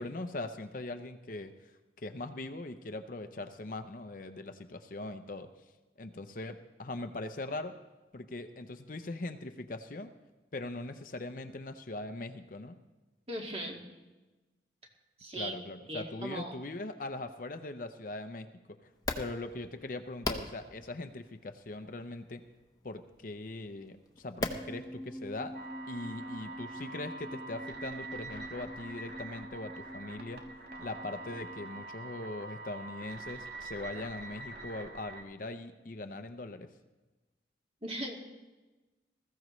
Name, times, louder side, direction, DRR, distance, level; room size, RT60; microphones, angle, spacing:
voice 1, 0.0-1.5 2.0-5.5 6.0-7.7 8.1-10.1 10.5-12.8 15.3-18.5 19.2-22.4 22.8-25.6 25.9-30.4 30.8-36.7, left 2 dB, 45° left, 8 dB, 0.7 m, -41 dB
voice 2, 13.3-13.8 15.2-15.5 15.9-16.5 37.8-38.2, right 1 dB, 30° right, 0 dB, 1.9 m, -38 dB
sound 1, 18.9-26.8, left 2 dB, 20° left, 0.9 m, -43 dB
sound 2, 24.4-31.9, equal, 10° right, 1.2 m, -47 dB
sound 3, 25.5-35.2, right 3 dB, 60° right, 1.7 m, -45 dB
20.5 x 14.5 x 3.2 m, 1.2 s
head